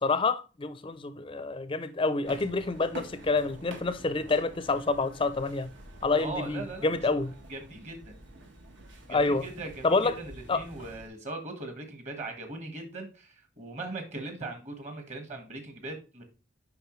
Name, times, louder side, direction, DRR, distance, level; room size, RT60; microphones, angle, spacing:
voice 1, 0.0-5.7 6.0-7.3 9.1-9.4 9.8-10.2 10.5-10.6, left 3 dB, 25° left, 0.5 m, -28 dB
sound 1, 2.2-11.1, right 1 dB, 75° right, 1.4 m, -48 dB
voice 2, 6.2-8.2 9.0-16.2, right 2 dB, 35° right, 1.5 m, -40 dB
7.9 x 5.3 x 3.1 m
head